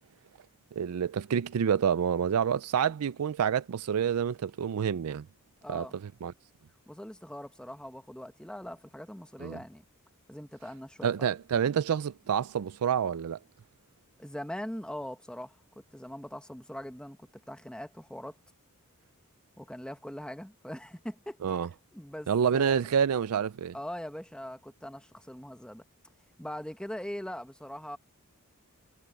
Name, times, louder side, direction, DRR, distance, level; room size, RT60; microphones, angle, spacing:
voice 1, 0.7-5.3 5.7-6.3 9.4-9.6 11.0-13.4 21.4-21.7 22.3-23.7, right 7 dB, 75° right, 0.4 m, -28 dB
voice 2, 5.6-6.0 6.9-9.8 10.3-11.3 14.2-15.6 15.9-17.2 17.5-18.4 19.6-21.6 21.9-22.8 23.7-25.8 26.4-28.0, equal, 5° left, 1.2 m, -41 dB
head